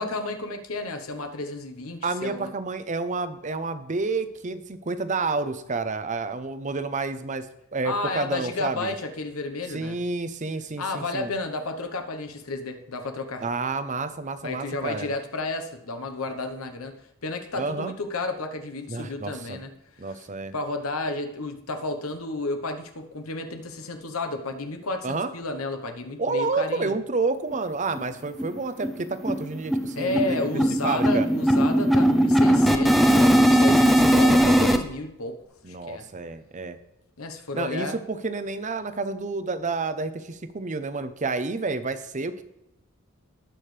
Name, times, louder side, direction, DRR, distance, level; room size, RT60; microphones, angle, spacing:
voice 1, 0.0-2.5 7.8-10.0 10.8-13.4 14.4-16.9 17.2-19.7 20.0-20.3 20.5-26.9 30.0-36.1 37.2-38.0, left 2 dB, 75° left, 7 dB, 1.1 m, -32 dB
voice 2, 2.0-7.5 7.7-8.9 9.7-11.3 13.4-15.1 17.6-17.9 18.9-19.6 20.0-20.5 25.0-25.3 26.2-31.3 35.6-36.8 37.5-42.4, right 3 dB, 35° right, 11 dB, 0.7 m, -29 dB
sound 1, 27.5-27.6 27.9-28.0 28.4-28.6 28.8-34.8, equal, ahead, 0.6 m, -19 dB
18.5 x 6.3 x 3.3 m, 0.84 s
head